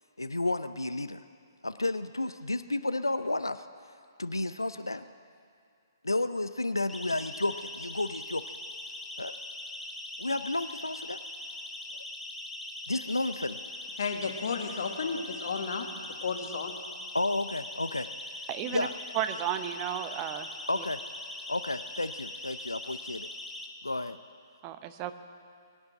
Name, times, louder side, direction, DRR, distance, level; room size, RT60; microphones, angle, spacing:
voice 1, 0.2-1.2 1.6-3.7 4.2-5.1 6.0-8.6 9.2-9.3 10.2-11.2 12.9-13.6 17.1-18.1 18.7-18.9 20.7-21.0 21.5-23.3 23.8-24.2, left 2 dB, 85° left, 0.5 m, -31 dB
Siren, 6.9-23.7, left 1 dB, ahead, 0.9 m, -41 dB
voice 2, 14.0-15.9 16.2-16.7, left 5 dB, 55° left, 1.5 m, -33 dB
voice 3, 18.5-18.9 19.1-20.5 20.8-20.9 24.6-25.1, right 11 dB, 25° right, 0.8 m, -33 dB
22.0 x 8.2 x 7.6 m
figure-of-eight pair, 125°, 2 cm